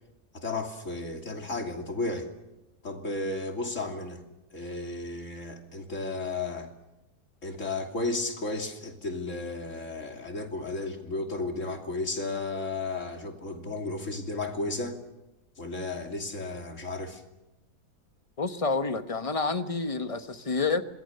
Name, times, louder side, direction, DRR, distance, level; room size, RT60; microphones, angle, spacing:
voice 1, 0.3-2.3 2.8-4.2 4.5-6.7 7.4-15.0 15.6-17.2, left 2 dB, 50° left, 3 dB, 3.2 m, -33 dB
voice 2, 18.4-20.8, left 4 dB, 25° left, 9 dB, 1.1 m, -28 dB
27.0 x 21.0 x 6.9 m, 0.96 s
omnidirectional pair, 1.7 m